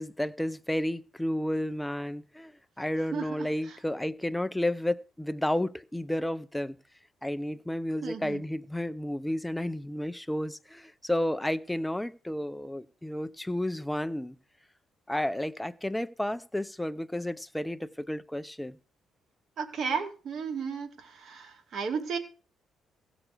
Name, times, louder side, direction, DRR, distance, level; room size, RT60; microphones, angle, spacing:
voice 1, 0.0-6.8 7.2-14.4 15.1-18.8, left 1 dB, 5° left, 0.7 m, -32 dB
voice 2, 3.1-3.5 8.0-8.4 19.6-22.2, right 5 dB, 60° right, 2.4 m, -34 dB
16.0 x 6.1 x 6.7 m
cardioid pair, 90°, 0 cm